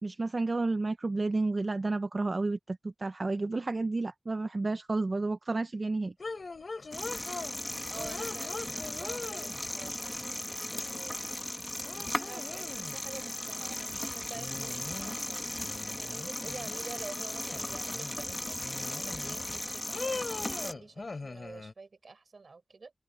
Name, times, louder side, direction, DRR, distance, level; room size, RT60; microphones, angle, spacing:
voice 1, 0.0-6.1, right 3 dB, 40° right, 0.7 m, -31 dB
sound 1, 6.2-7.6 8.0-9.9 11.3-11.4 11.8-13.0 14.3-15.3 15.6-16.9 17.4-18.2 18.6-19.5 19.9-21.7, left 3 dB, 50° left, 3.8 m, -41 dB
sound 2, 6.9-20.7, left 1 dB, 15° left, 1.7 m, -37 dB
voice 2, 7.9-11.2 12.0-15.5 15.9-18.6 18.9-22.9, right 4 dB, 60° right, 6.3 m, -48 dB
open air
wide cardioid pair, 105°, 0 cm